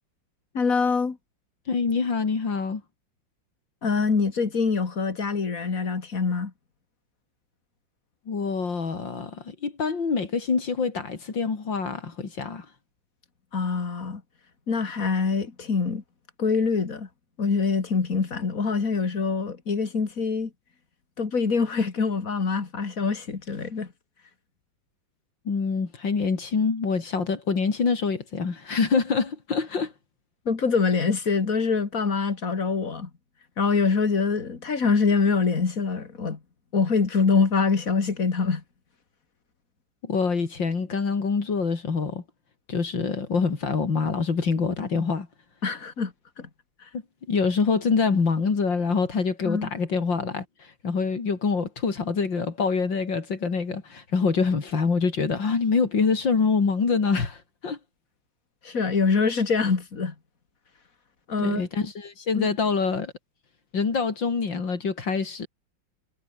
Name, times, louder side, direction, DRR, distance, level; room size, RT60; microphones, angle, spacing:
voice 1, 0.5-1.2 3.8-6.5 13.5-14.2 14.7-16.0 16.4-17.1 17.4-20.5 21.2-23.9 30.5-33.1 33.6-36.4 36.7-38.6 45.6-46.5 46.8-46.9 49.4-49.7 58.6-60.1 61.3-61.6 62.3-62.5, left 5 dB, 50° left, 2.8 m, -24 dB
voice 2, 1.7-2.8 8.3-12.7 25.5-29.9 40.0-42.2 42.7-45.3 47.3-57.8 61.4-63.1 63.7-65.5, left 5 dB, 85° left, 3.8 m, -25 dB
omnidirectional pair, 2.0 m